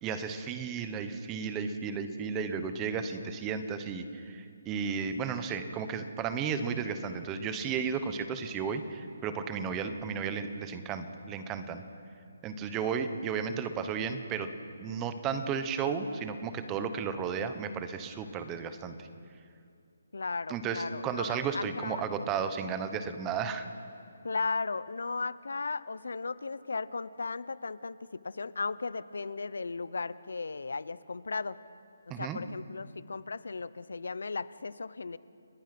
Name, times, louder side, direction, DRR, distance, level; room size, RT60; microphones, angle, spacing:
voice 1, 0.0-11.8 12.4-14.5 14.8-19.1 20.5-23.7 32.1-32.4, right 6 dB, 15° right, 9 dB, 1.1 m, -34 dB
voice 2, 20.1-22.0 24.2-31.6 32.1-35.2, left 4 dB, 80° left, 17 dB, 0.9 m, -36 dB
30.0 x 19.5 x 6.1 m, 2.4 s
hypercardioid pair, 170°, 0 cm